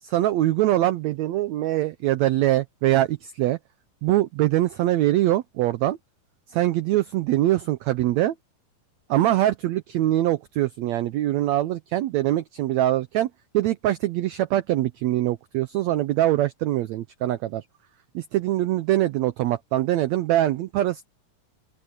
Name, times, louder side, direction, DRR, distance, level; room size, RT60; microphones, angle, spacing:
voice 1, 0.0-3.6 4.0-6.0 6.5-8.3 9.1-13.3 13.5-17.6 18.1-21.1, right 14 dB, 85° right, 1.5 m, -23 dB
open air
omnidirectional pair, 4.0 m